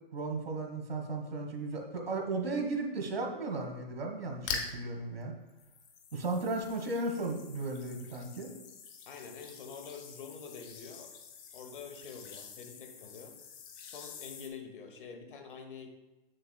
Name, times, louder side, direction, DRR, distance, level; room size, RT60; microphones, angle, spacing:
voice 1, 0.1-5.3 6.1-8.5, right 2 dB, 80° right, 3 dB, 1.5 m, -35 dB
sound 1, 4.3-4.8 5.5-14.5, left 6 dB, 25° left, 0.5 m, -45 dB
voice 2, 9.1-11.1 11.5-13.3 13.8-15.9, left 6 dB, 60° left, 5 dB, 1.1 m, -46 dB
7.1 x 6.6 x 2.3 m, 1.0 s
hypercardioid pair, 140°, 29 cm